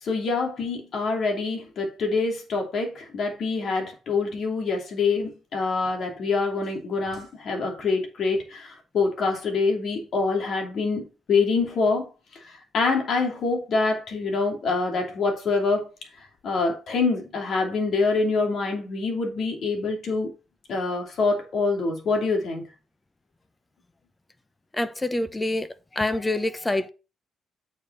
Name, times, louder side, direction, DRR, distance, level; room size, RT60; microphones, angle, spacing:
voice 1, 0.0-12.1 12.5-15.9 16.4-20.3 20.7-22.6, left 4 dB, 60° left, 2.9 m, -25 dB
voice 2, 24.7-25.7 25.9-26.9, left 2 dB, 15° left, 0.9 m, -26 dB
8.6 x 5.3 x 4.1 m
cardioid pair, 90°, 0 cm